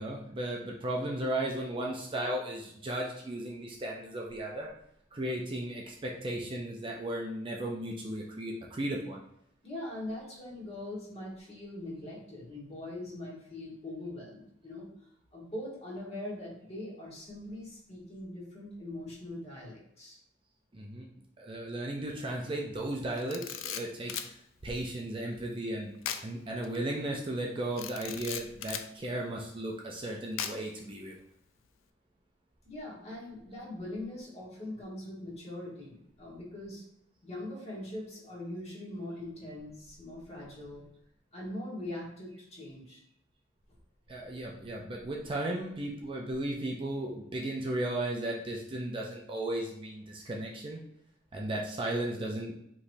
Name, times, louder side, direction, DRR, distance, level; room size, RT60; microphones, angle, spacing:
voice 1, 0.0-4.7 5.1-9.2 20.7-21.1 21.4-24.4 24.6-25.9 26.2-31.2 44.1-50.8 51.3-52.5, right 1 dB, 25° right, -1 dB, 0.4 m, -35 dB
voice 2, 9.6-14.9 15.3-20.2 32.6-36.8 37.2-40.9 41.3-43.0, left 1 dB, 30° left, -5 dB, 1.4 m, -42 dB
Camera, 23.2-24.3 26.0-26.3 26.6-26.8 27.8-28.9 30.4-30.8, left 9 dB, 80° left, 0.4 m, -37 dB
5.0 x 3.1 x 2.6 m, 0.73 s
head